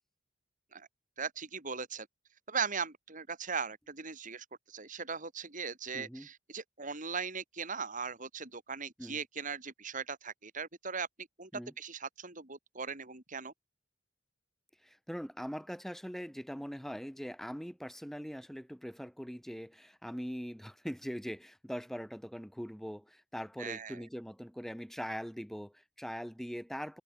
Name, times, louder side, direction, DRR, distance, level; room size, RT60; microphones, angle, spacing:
voice 1, 1.2-2.1 2.5-11.1 11.4-11.5 11.8-13.5 23.6-24.0, right 5 dB, 40° right, 3.8 m, -39 dB
voice 2, 5.9-6.3 9.0-9.2 11.5-11.7 14.8-27.0, equal, ahead, 5.4 m, -42 dB
open air
head